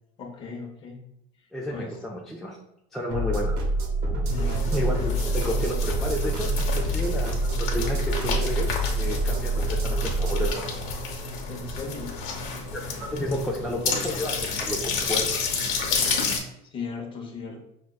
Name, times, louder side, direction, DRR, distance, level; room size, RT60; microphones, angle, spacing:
voice 1, 0.2-1.0 1.7-2.0 4.3-5.0 11.5-12.2 16.7-17.6, left 4 dB, 30° left, 1 dB, 0.7 m, -37 dB
voice 2, 1.5-2.6 2.9-3.6 4.1-4.4 4.7-9.5 9.8-10.7 11.2-11.3 12.7-15.4, equal, ahead, -4 dB, 0.3 m, -31 dB
sound 1, 3.1-10.5, right 1 dB, 60° right, 0.7 m, -26 dB
sound 2, 4.2-16.4, left 3 dB, 65° left, 0.9 m, -30 dB
6.0 x 2.2 x 2.2 m, 0.80 s
cardioid pair, 155°, 18 cm